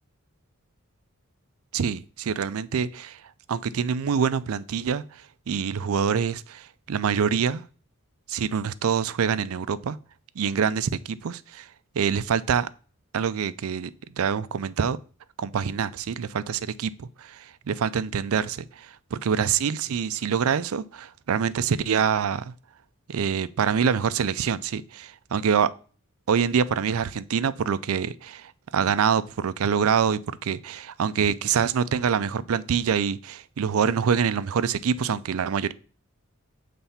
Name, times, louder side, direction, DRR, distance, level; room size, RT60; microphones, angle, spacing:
voice 1, 1.7-3.2 3.5-7.6 8.3-10.0 10.4-11.7 12.0-12.7 13.1-13.9 14.2-15.0 15.4-22.5 23.1-25.7 26.3-35.7, right 7 dB, 75° right, 0.4 m, -25 dB
7.0 x 3.4 x 5.6 m
head